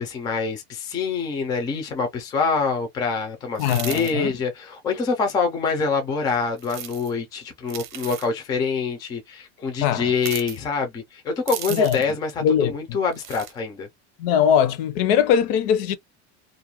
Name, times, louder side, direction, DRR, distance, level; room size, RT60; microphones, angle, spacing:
voice 1, 0.0-13.9, left 4 dB, 10° left, 0.3 m, -25 dB
sound 1, 3.5-4.1 6.6-7.1 7.7-8.3 10.2-10.6 11.5-12.1 13.1-13.5, right 10 dB, 40° right, 0.7 m, -35 dB
voice 2, 3.6-4.4 9.8-10.1 11.7-12.0 12.4-13.0 14.2-16.0, left 8 dB, 60° left, 0.5 m, -21 dB
2.4 x 2.1 x 2.8 m
supercardioid pair, 165°, 34 cm